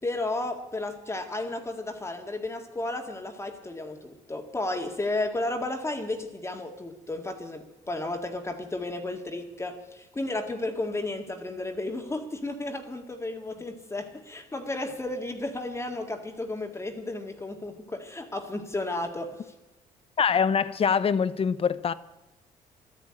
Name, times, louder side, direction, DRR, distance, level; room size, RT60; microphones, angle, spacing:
voice 1, 0.0-19.5, left 2 dB, 20° left, 1.9 m, -33 dB
voice 2, 20.2-21.9, left 6 dB, 40° left, 0.8 m, -24 dB
13.0 x 11.0 x 8.8 m
cardioid pair, 90°, 15 cm